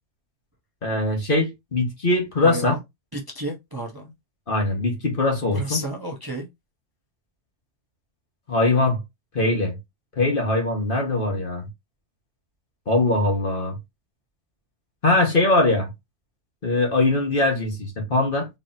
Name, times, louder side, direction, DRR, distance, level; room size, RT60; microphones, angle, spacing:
voice 1, 0.8-2.7 4.5-5.8 8.5-9.0 9.3-9.8 10.2-11.7 12.9-13.8 15.0-15.9 16.6-18.5, left 2 dB, 45° left, 1.6 m, -21 dB
voice 2, 2.4-2.8 3.1-4.1 5.5-6.5, right 1 dB, 20° right, 0.8 m, -31 dB
4.1 x 3.3 x 2.6 m
omnidirectional pair, 1.2 m